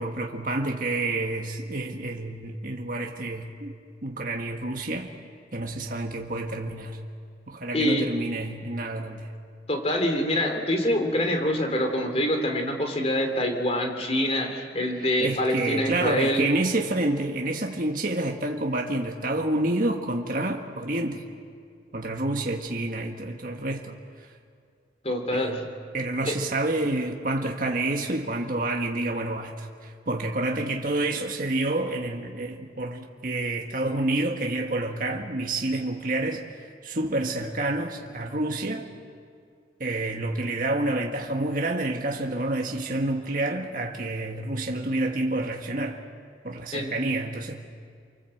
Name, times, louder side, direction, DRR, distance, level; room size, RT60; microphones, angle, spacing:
voice 1, 0.0-3.7 4.0-5.1 5.5-7.0 7.5-9.3 15.0-21.3 21.9-24.3 25.3-25.6 25.9-38.9 39.8-46.0 46.4-47.6, right 2 dB, 50° right, 1.6 m, -28 dB
voice 2, 7.7-8.1 9.7-16.5 25.0-25.6 26.2-26.4 46.7-46.9, left 1 dB, 35° left, 3.4 m, -25 dB
29.0 x 24.5 x 7.9 m
head